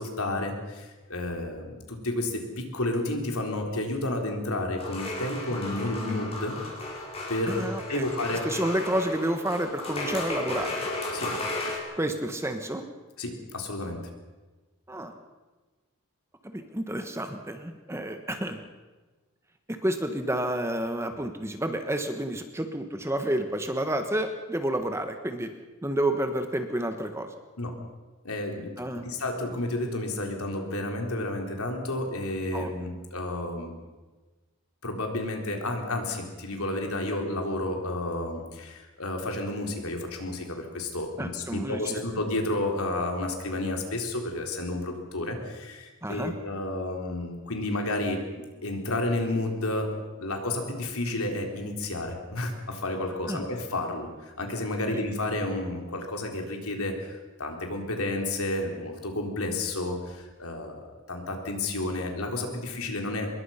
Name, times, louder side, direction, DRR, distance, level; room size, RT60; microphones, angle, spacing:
voice 1, 0.0-6.6 7.3-8.4 11.1-11.3 13.2-14.0 27.6-27.7 28.2-33.7 34.8-48.2 48.6-63.3, left 2 dB, 75° left, 2 dB, 3.9 m, -31 dB
sound 1, 4.8-11.8, left 2 dB, 25° left, 4.9 m, -34 dB
voice 2, 7.5-8.1 8.4-10.9 12.0-12.8 14.9-15.1 16.4-18.6 19.7-25.5 25.8-27.3 28.8-29.0 32.5-32.7 41.2-42.0 46.0-46.3 53.3-53.4 54.9-55.0, right 1 dB, 10° right, 7 dB, 1.3 m, -30 dB
25.0 x 21.5 x 5.8 m, 1.2 s
head